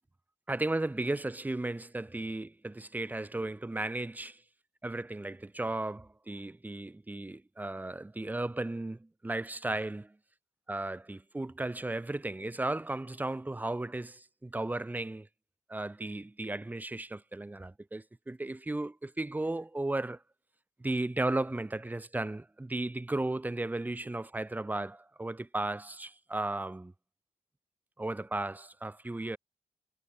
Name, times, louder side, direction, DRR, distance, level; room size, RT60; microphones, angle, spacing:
voice 1, 0.5-4.4 4.8-10.2 10.7-15.3 15.7-20.2 20.8-26.9 28.0-29.4, right 2 dB, 15° right, 4.2 m, -35 dB
wide cardioid pair, 130°, 12 cm